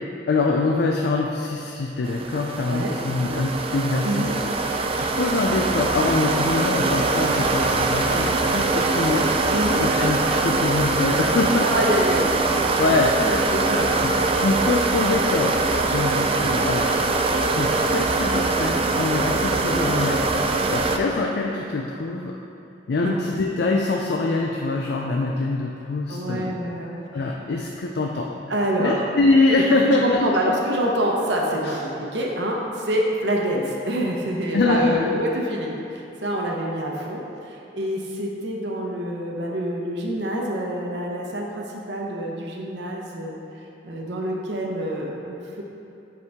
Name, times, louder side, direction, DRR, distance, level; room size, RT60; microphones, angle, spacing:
voice 1, 0.3-4.3 4.6-9.3 9.8-12.0 12.8-13.4 14.0-15.6 15.9-17.0 17.5-20.2 20.7-22.4 22.9-26.5 27.1-28.3 28.8-30.5 31.6-31.8 34.5-35.0, left 3 dB, 65° left, 0 dB, 0.4 m, -24 dB
sound 1, 2.0-21.0, right 3 dB, 30° right, 0.4 m, -22 dB
voice 2, 11.6-12.3 13.2-13.9 23.0-23.1 26.1-27.3 28.5-29.0 29.8-43.4 43.8-45.6, equal, 70° right, -1 dB, 0.9 m, -26 dB
7.8 x 4.7 x 3.5 m, 2.8 s
head